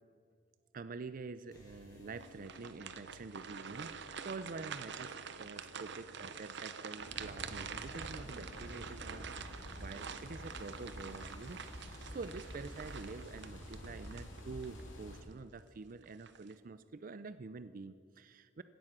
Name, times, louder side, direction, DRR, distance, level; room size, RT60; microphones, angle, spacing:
voice 1, 0.7-18.6, right 4 dB, 45° right, 13 dB, 0.5 m, -47 dB
sound 1, 1.5-7.7, left 3 dB, 20° left, 4.2 m, -60 dB
sound 2, 2.2-14.8 15.3-15.4 16.0-16.5, right 7 dB, 65° right, 0.9 m, -47 dB
sound 3, 7.0-15.2, equal, 75° left, 3.3 m, -48 dB
17.0 x 13.0 x 6.0 m, 2.2 s
head